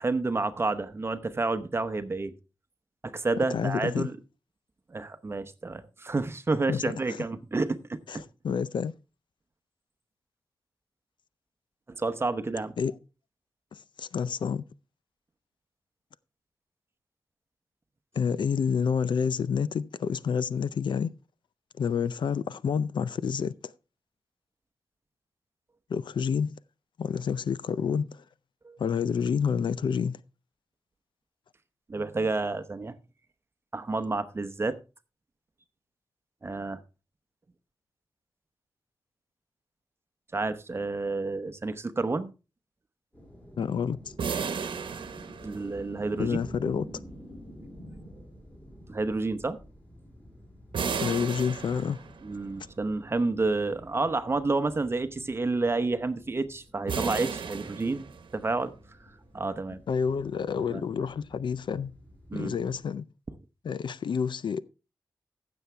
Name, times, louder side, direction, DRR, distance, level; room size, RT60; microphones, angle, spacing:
voice 1, 0.0-2.3 3.0-4.1 4.9-8.0 12.0-12.7 28.6-28.8 31.9-32.9 33.7-34.8 36.4-36.8 40.3-42.3 45.4-46.4 48.9-49.6 52.2-58.0 58.3-58.7 59.3-59.8 60.6-60.8 62.3-62.5, right 3 dB, 30° right, 0.9 m, -29 dB
voice 2, 3.5-4.1 6.7-6.8 7.1-7.2 8.1-8.9 12.8-12.9 13.7-14.6 18.1-21.1 21.8-23.7 25.9-26.5 27.0-28.2 28.8-30.2 43.6-44.1 46.2-46.9 51.0-52.0 59.9-61.9 62.3-63.1 63.6-64.6, left 6 dB, 70° left, 0.5 m, -29 dB
sound 1, 43.1-62.8, equal, 20° left, 4.8 m, -50 dB
sound 2, 44.2-46.1 50.7-52.4 56.9-58.5, right 6 dB, 90° right, 1.1 m, -34 dB
15.5 x 7.1 x 3.4 m
wide cardioid pair, 120°, 8 cm